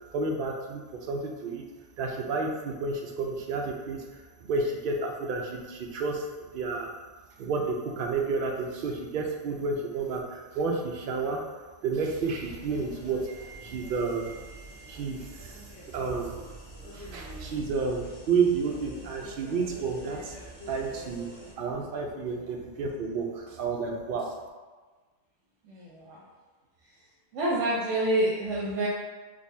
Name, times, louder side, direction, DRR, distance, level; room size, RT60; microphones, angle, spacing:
voice 1, 0.1-1.6 2.0-4.0 4.5-6.3 6.5-6.9 7.4-11.4 11.8-15.6 15.9-16.4 16.9-20.3 20.7-21.3 21.6-24.3, right 4 dB, 60° right, 1 dB, 0.6 m, -31 dB
sound 1, 12.0-21.5, right 1 dB, 65° left, 1.4 m, -46 dB
voice 2, 25.6-26.2 27.3-28.9, right 1 dB, 90° right, -5 dB, 1.0 m, -27 dB
3.8 x 2.7 x 2.6 m, 1.3 s
omnidirectional pair, 1.2 m